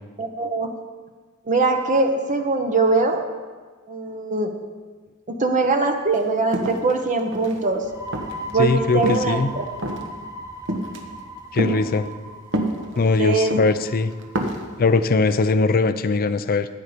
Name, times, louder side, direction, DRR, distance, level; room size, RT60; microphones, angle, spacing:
voice 1, 0.2-0.7 1.5-3.2 3.9-4.5 5.3-7.8 8.5-9.6 12.9-13.5, right 3 dB, 35° right, 5 dB, 0.9 m, -22 dB
sound 1, 6.1-6.2 6.5-7.6 8.1-8.5 9.0-9.4 9.8-10.1 10.7-11.0 11.6-11.8 12.5-13.1 13.5-13.8 14.2-14.7, right 1 dB, 60° right, 1.3 m, -26 dB
sound 2, 7.7-15.2, right 1 dB, 15° right, 1.1 m, -38 dB
voice 2, 8.6-9.5 11.5-12.1 13.0-14.1 14.8-16.7, left 3 dB, 45° left, 12 dB, 0.5 m, -20 dB
12.0 x 9.6 x 5.1 m, 1.4 s
head